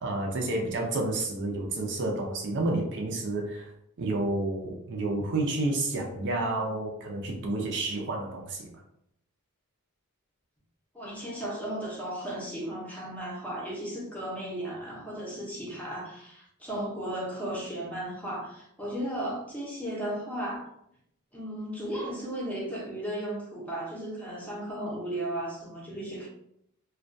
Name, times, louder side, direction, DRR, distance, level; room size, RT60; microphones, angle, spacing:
voice 1, 0.0-3.7 4.0-8.7, right 2 dB, 55° right, 1 dB, 0.5 m, -30 dB
voice 2, 10.9-20.7 21.3-26.3, right 1 dB, 5° left, -4 dB, 0.6 m, -35 dB
2.2 x 2.2 x 2.5 m, 0.74 s
head